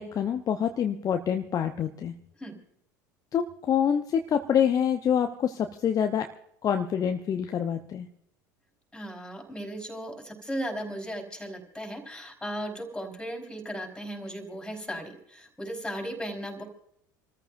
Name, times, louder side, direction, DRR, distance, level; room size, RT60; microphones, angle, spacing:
voice 1, 0.0-2.1 3.3-6.3 6.6-8.1, left 8 dB, 35° left, 6 dB, 0.8 m, -26 dB
voice 2, 8.9-16.6, equal, 5° left, 2 dB, 4.3 m, -36 dB
28.5 x 14.0 x 2.6 m, 0.72 s
figure-of-eight pair, 70°, 11 cm